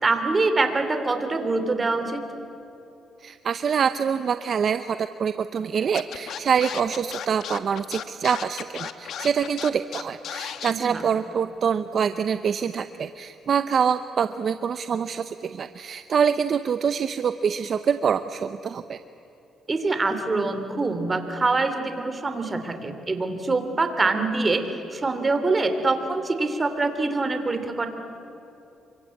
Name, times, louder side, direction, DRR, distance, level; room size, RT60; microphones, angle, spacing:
voice 1, 0.0-2.2 10.7-11.0 19.7-27.9, right 3 dB, 30° right, 8 dB, 3.1 m, -24 dB
voice 2, 3.2-19.0, right 7 dB, 55° right, 11 dB, 0.8 m, -25 dB
Scratching (performance technique), 5.9-10.7, left 9 dB, 70° left, 1.3 m, -34 dB
28.5 x 24.0 x 8.6 m, 2.9 s
cardioid pair, 90°, 0 cm